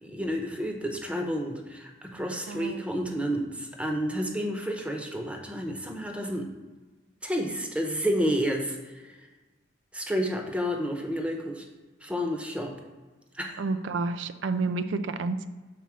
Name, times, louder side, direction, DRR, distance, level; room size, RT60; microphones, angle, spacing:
voice 1, 0.0-6.5 7.2-9.2 9.9-11.6 12.0-12.7 13.3-13.6, equal, 5° right, 2 dB, 0.8 m, -30 dB
voice 2, 2.5-2.8 13.6-15.5, right 3 dB, 70° right, 11 dB, 0.4 m, -30 dB
5.9 x 4.0 x 6.2 m, 1.3 s
head